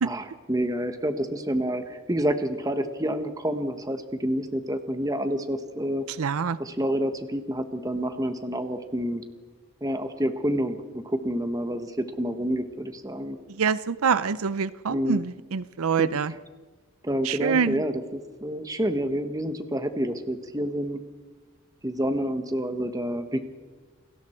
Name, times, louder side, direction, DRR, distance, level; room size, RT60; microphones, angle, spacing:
voice 1, 0.0-6.0 6.6-9.2 9.8-13.4 14.9-15.2 16.0-16.1 17.0-18.0 18.4-21.0 21.8-23.4, equal, 15° right, 8 dB, 1.3 m, -28 dB
voice 2, 6.2-6.6 13.6-16.3 17.2-17.8, right 6 dB, 80° right, 16 dB, 0.6 m, -25 dB
29.0 x 20.0 x 4.5 m, 1.3 s
head